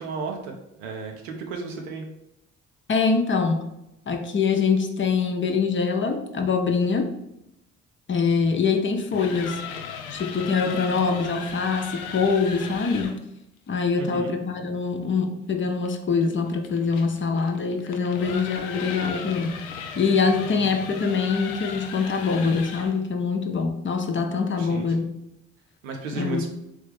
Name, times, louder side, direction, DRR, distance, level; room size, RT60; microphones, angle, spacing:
voice 1, 0.0-2.0 14.0-14.4 24.6-24.9 25.8-26.5, right 4 dB, 90° right, 1 dB, 0.7 m, -33 dB
voice 2, 2.9-3.7 4.1-7.1 8.1-9.7 10.1-13.1 13.7-19.7 20.0-25.2 26.1-26.5, left 5 dB, 30° left, 4 dB, 0.7 m, -24 dB
sound 1, 8.9-13.2 15.8-23.0, left 6 dB, 75° left, 0.5 m, -37 dB
3.2 x 3.2 x 3.4 m, 0.87 s
hypercardioid pair, 50°, 37 cm